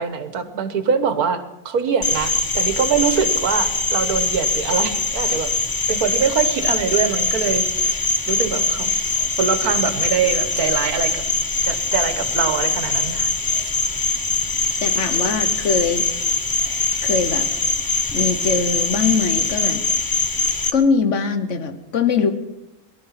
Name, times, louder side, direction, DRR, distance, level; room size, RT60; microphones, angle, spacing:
voice 1, 0.0-5.5 5.9-8.9 9.4-11.2 11.6-13.3, right 6 dB, 85° right, 10 dB, 1.7 m, -23 dB
Cricket, 2.0-20.7, left 3 dB, 35° left, 0.3 m, -22 dB
voice 2, 14.8-16.0 17.0-17.5 18.1-19.8 20.7-22.3, left 5 dB, 55° left, 8 dB, 1.4 m, -21 dB
18.5 x 12.0 x 5.8 m, 0.90 s
omnidirectional pair, 1.5 m